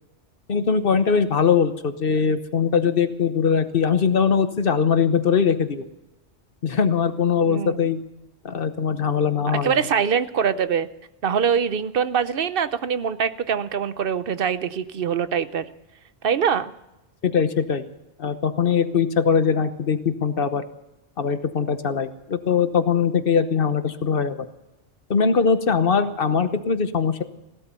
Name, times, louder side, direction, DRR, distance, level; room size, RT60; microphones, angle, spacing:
voice 1, 0.5-5.8 6.6-8.0 8.4-9.8 17.2-17.8 18.2-20.6 21.2-24.4 25.1-27.2, left 6 dB, 50° left, 10 dB, 1.1 m, -21 dB
voice 2, 7.5-7.8 9.5-10.9 11.2-15.7 16.2-16.7, right 7 dB, 55° right, 13 dB, 0.9 m, -23 dB
16.5 x 12.5 x 6.9 m, 0.93 s
omnidirectional pair, 1.2 m